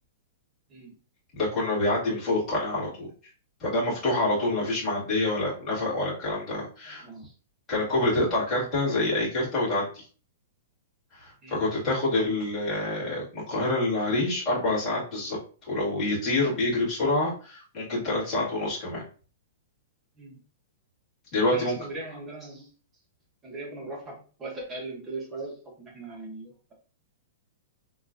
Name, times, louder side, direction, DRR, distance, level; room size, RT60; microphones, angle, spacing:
voice 1, 1.4-3.1 3.6-7.0 7.7-10.0 11.1-19.0 21.3-21.7, left 2 dB, 15° left, -8 dB, 1.9 m, -27 dB
voice 2, 6.9-7.3 11.4-11.6 20.2-20.4 21.5-22.7 23.4-26.7, right 2 dB, 10° right, 0 dB, 0.9 m, -39 dB
6.1 x 2.3 x 2.5 m, 0.39 s
hypercardioid pair, 180°, 0 cm